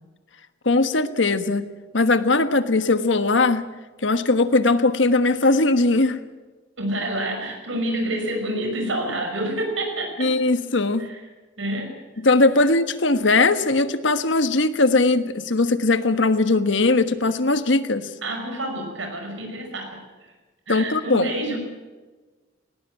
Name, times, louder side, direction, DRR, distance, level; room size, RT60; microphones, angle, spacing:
voice 1, 0.6-1.7 1.9-3.7 4.0-6.2 10.2-11.1 12.2-18.1 20.7-21.3, left 3 dB, 75° left, 11 dB, 1.3 m, -19 dB
voice 2, 6.8-10.3 11.0-11.2 11.6-12.0 18.2-20.3 20.7-21.6, right 1 dB, 90° right, 3 dB, 5.7 m, -28 dB
18.5 x 18.5 x 9.0 m, 1.3 s
head